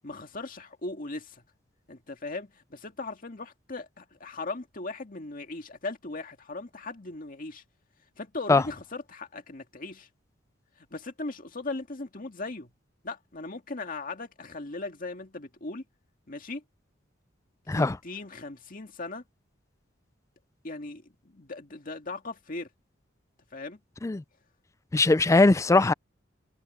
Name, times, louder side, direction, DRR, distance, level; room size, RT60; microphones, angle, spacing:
voice 1, 0.0-1.4 1.9-7.6 8.2-10.1 10.8-12.7 13.0-15.8 16.3-16.6 17.7-19.2 20.6-22.7 23.5-23.8, left 3 dB, 45° left, 2.1 m, -38 dB
voice 2, 24.9-25.9, left 3 dB, 15° left, 0.3 m, -20 dB
head